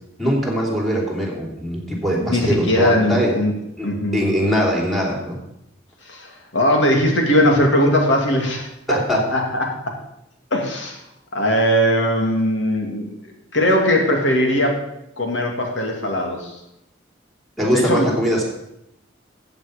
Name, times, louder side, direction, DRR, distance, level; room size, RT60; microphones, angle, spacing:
voice 1, 0.2-3.3 3.8-5.4 8.9-9.2 17.6-18.4, equal, ahead, -1 dB, 3.0 m, -21 dB
voice 2, 2.2-3.5 3.8-4.2 6.0-9.7 10.5-11.0 11.3-13.1 13.5-14.8 15.2-16.6 17.7-18.1, equal, 85° left, 1 dB, 2.6 m, -19 dB
14.0 x 8.0 x 5.2 m, 0.80 s
head